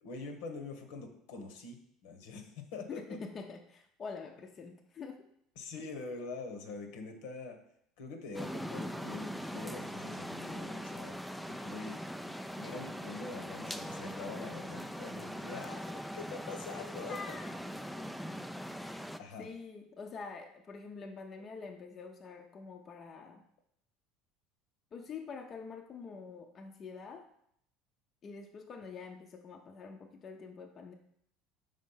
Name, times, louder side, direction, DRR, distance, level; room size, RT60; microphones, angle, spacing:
voice 1, 0.0-3.2 5.6-7.6 8.0-11.2 11.5-12.0 12.2-12.3 12.6-17.4 19.2-19.5, left 3 dB, 80° left, 5 dB, 1.0 m, -44 dB
voice 2, 2.9-5.3 17.1-17.5 18.0-18.1 18.8-19.1 19.4-23.4 24.9-27.3 28.2-30.9, left 5 dB, 40° left, 3 dB, 0.6 m, -46 dB
sound 1, 8.3-19.2, equal, ahead, 0.3 m, -41 dB
5.2 x 3.7 x 5.5 m, 0.72 s
supercardioid pair, 100°, 0 cm